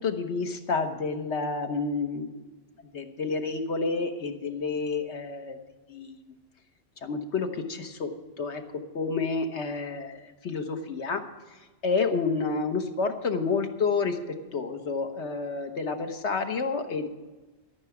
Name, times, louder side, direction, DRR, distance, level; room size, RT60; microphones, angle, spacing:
voice 1, 0.0-2.4 2.9-5.6 5.9-6.2 7.0-8.1 8.4-8.6 8.9-11.2 11.8-14.2 14.5-17.1, left 4 dB, 75° left, 5 dB, 1.3 m, -29 dB
13.0 x 5.9 x 8.4 m, 1.2 s
omnidirectional pair, 1.2 m